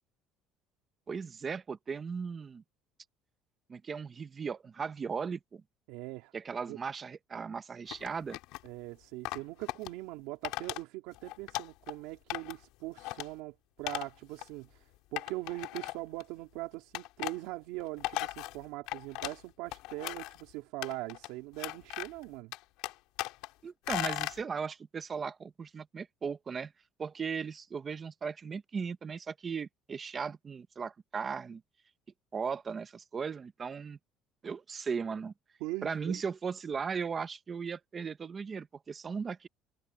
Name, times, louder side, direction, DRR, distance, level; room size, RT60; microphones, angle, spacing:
voice 1, 1.1-2.6 3.7-5.6 6.3-8.4 23.6-26.7 27.0-31.6 32.3-34.0 34.4-35.3 35.8-39.5, right 6 dB, 25° right, 1.1 m, -37 dB
voice 2, 5.9-6.3 6.7-6.8 8.6-22.5 35.6-36.2, right 20 dB, 85° right, 3.1 m, -41 dB
sound 1, 7.9-8.7 9.2-9.9 10.4-10.8 11.1-11.9 12.3-12.6 13.0-13.3 13.9-14.1 14.4-14.5 15.2-16.2 16.9-17.4 17.8-19.4 19.7-20.4 20.8-21.3 21.6-22.2 22.5-23.5 23.9-24.4, left 19 dB, 75° left, 3.9 m, -37 dB
cardioid pair, 165°, 0 cm